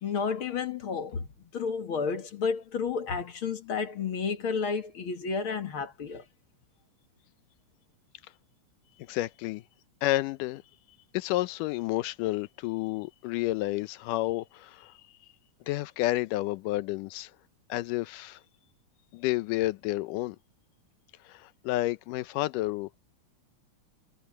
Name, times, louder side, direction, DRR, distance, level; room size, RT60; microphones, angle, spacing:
voice 1, 0.0-6.2, left 5 dB, 50° left, 2.1 m, -31 dB
voice 2, 9.1-9.6 10.0-10.6 11.1-14.9 15.7-17.3 17.7-18.4 19.1-20.4 21.3-22.9, left 17 dB, 90° left, 2.3 m, -30 dB
omnidirectional pair, 3.7 m